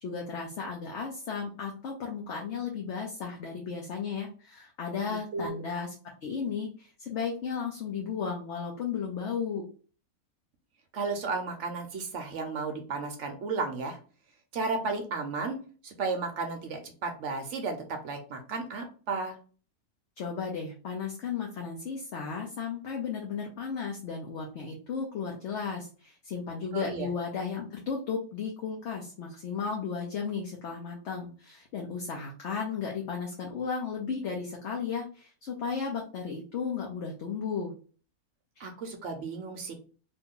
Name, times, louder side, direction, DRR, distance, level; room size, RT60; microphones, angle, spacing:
voice 1, 0.0-5.9 6.2-9.6 20.2-37.7 38.6-38.7, left 6 dB, 60° left, 0 dB, 0.9 m, -34 dB
voice 2, 5.0-5.5 10.9-14.0 14.5-15.6 15.8-19.4 26.7-27.1 38.6-39.7, right 4 dB, 60° right, 4 dB, 0.9 m, -33 dB
2.9 x 2.6 x 3.6 m, 0.39 s
omnidirectional pair, 1.5 m